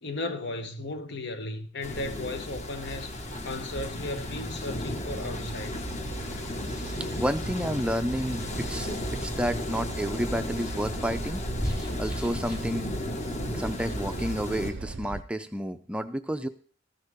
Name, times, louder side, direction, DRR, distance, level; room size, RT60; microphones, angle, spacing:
voice 1, 0.0-3.1 3.4-5.8, left 2 dB, 60° left, 1.2 m, -35 dB
sound 1, 1.8-14.7, left 1 dB, 40° left, 1.4 m, -34 dB
sound 2, 4.0-12.7, equal, 20° left, 1.8 m, -46 dB
sound 3, 5.1-15.2, right 3 dB, 80° right, 0.6 m, -40 dB
voice 2, 6.7-11.4 12.0-12.9 13.5-16.5, equal, 5° right, 0.5 m, -31 dB
14.0 x 10.5 x 3.5 m
head